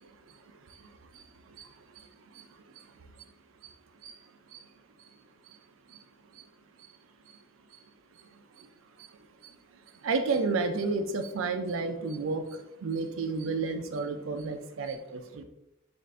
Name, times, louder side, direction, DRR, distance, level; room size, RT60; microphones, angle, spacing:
voice 1, 0.7-2.5 2.8-2.9 4.0-4.2 4.5-4.7 5.5-5.6 5.9-6.0 6.3-6.5 6.8-6.9 7.7-7.8 8.6-8.7 9.0-9.1 9.4-9.5 10.0-15.4, right 4 dB, 80° right, 7 dB, 0.5 m, -33 dB
3.7 x 2.5 x 3.2 m, 0.88 s
head